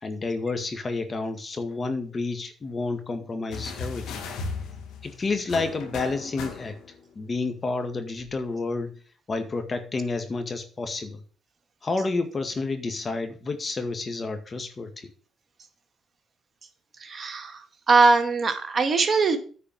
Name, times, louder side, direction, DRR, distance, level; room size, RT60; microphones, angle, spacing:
voice 1, 0.0-4.2 5.0-6.8 7.2-8.9 9.3-11.2 11.8-15.1, left 3 dB, 40° left, 7 dB, 1.9 m, -30 dB
sound 1, 3.5-7.0 8.2-8.3, left 4 dB, 80° left, 1.9 m, -36 dB
voice 2, 17.0-19.4, right 4 dB, 45° right, 5 dB, 2.0 m, -21 dB
9.5 x 4.8 x 7.6 m, 0.42 s
supercardioid pair, 65°, 0 cm